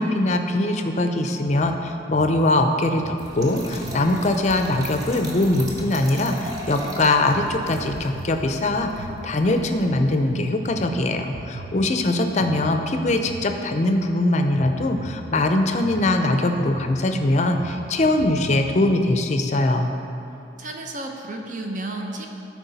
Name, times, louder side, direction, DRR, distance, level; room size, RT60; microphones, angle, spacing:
voice 1, 0.0-19.9, left 2 dB, 40° left, 5 dB, 0.5 m, -22 dB
sound 1, 1.5-18.7, right 2 dB, 80° right, 0.5 m, -38 dB
Trickle dribble / Fill (with liquid), 3.2-9.9, right 1 dB, 20° right, 1.0 m, -39 dB
voice 2, 20.6-22.3, right 2 dB, 45° right, 2 dB, 0.8 m, -32 dB
13.0 x 4.7 x 4.1 m, 2.9 s
head